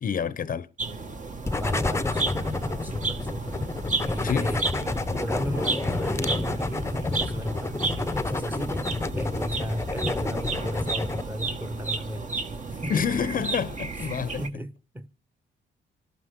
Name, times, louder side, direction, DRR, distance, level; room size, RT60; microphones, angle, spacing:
voice 1, 0.0-0.7 4.2-4.6 12.9-14.4, left 7 dB, 45° left, 0.8 m, -28 dB
sound 1, 0.8-14.5, right 3 dB, 40° right, 1.7 m, -33 dB
sound 2, 1.5-11.2, left 3 dB, 15° left, 0.8 m, -29 dB
voice 2, 1.5-3.6 4.0-4.7 5.2-8.9 9.2-13.5 14.0-14.1 14.4-15.1, equal, 10° right, 1.3 m, -35 dB
sound 3, 4.2-9.2, right 4 dB, 65° right, 4.6 m, -50 dB
25.5 x 12.0 x 3.7 m
cardioid pair, 90°, 20 cm